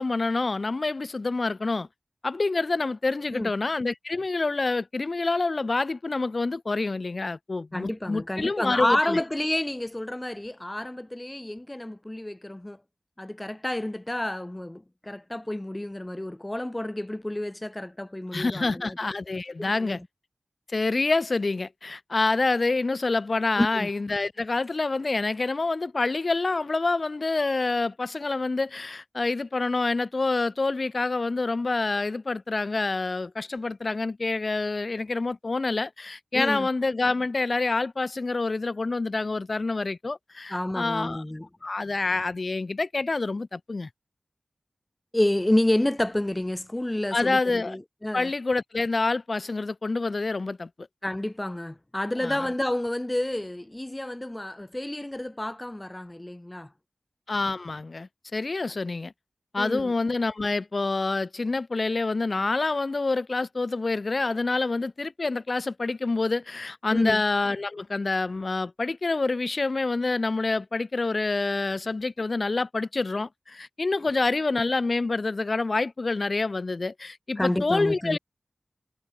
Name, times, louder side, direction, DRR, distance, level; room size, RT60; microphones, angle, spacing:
voice 1, 0.0-1.9 2.2-9.2 18.3-20.0 20.7-41.2 41.6-43.9 47.1-47.8 48.1-50.7 52.2-52.5 57.3-59.1 59.5-78.2, left 3 dB, 50° left, 0.8 m, -27 dB
voice 2, 7.7-12.8 13.2-19.0 19.6-20.0 23.6-23.9 36.3-36.7 40.5-41.5 45.1-48.3 51.0-56.7 59.6-59.9 66.9-67.2 77.4-78.2, left 1 dB, 15° left, 0.6 m, -29 dB
wide cardioid pair, 85°, 0 cm